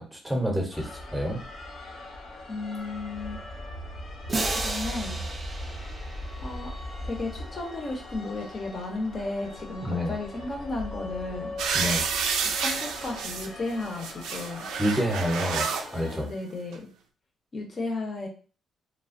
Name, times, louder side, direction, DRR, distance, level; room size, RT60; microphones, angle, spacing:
voice 1, 0.0-1.4 9.8-10.1 11.7-12.1 14.8-16.3, equal, 5° right, 0 dB, 0.8 m, -28 dB
sound 1, 0.7-16.2, left 1 dB, 70° left, 1.0 m, -39 dB
voice 2, 2.5-3.4 4.5-5.2 6.4-6.7 7.0-11.6 12.4-14.7 16.2-16.9 17.5-18.3, left 2 dB, 40° left, 1 dB, 0.9 m, -34 dB
sound 2, 4.3-7.1, right 2 dB, 35° right, 0.6 m, -33 dB
sound 3, 11.6-13.5 13.9-15.9 16.7-16.8, right 6 dB, 85° right, 0.4 m, -29 dB
3.2 x 2.1 x 2.5 m, 0.39 s
cardioid pair, 90°, 0 cm